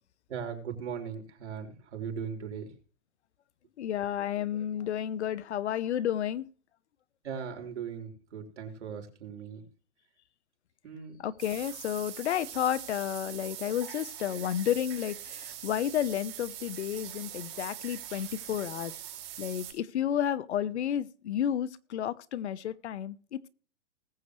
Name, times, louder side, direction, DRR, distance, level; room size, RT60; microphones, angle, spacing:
voice 1, 0.3-2.7 7.2-9.6 10.8-11.2, right 7 dB, 75° right, 4.2 m, -38 dB
voice 2, 3.8-6.5 11.2-18.9 19.4-23.5, left 10 dB, 70° left, 1.0 m, -31 dB
sound 1, 11.4-19.7, right 11 dB, 30° right, 5.6 m, -43 dB
20.0 x 7.9 x 3.2 m
hypercardioid pair, 155°, 35 cm